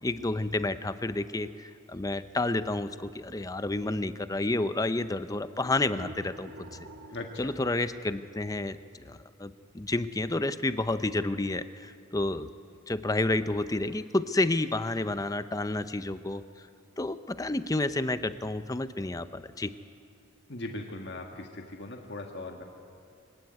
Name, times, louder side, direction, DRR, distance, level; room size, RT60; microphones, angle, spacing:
voice 1, 0.0-6.5 7.4-12.5 12.9-16.4 17.0-19.7, left 2 dB, 15° left, 13 dB, 0.6 m, -30 dB
sound 1, 5.5-8.7, right 1 dB, 65° right, 1.4 m, -48 dB
voice 2, 7.1-7.5 20.5-22.6, left 2 dB, 55° left, 2 dB, 1.6 m, -39 dB
23.5 x 16.0 x 9.6 m, 2.4 s
head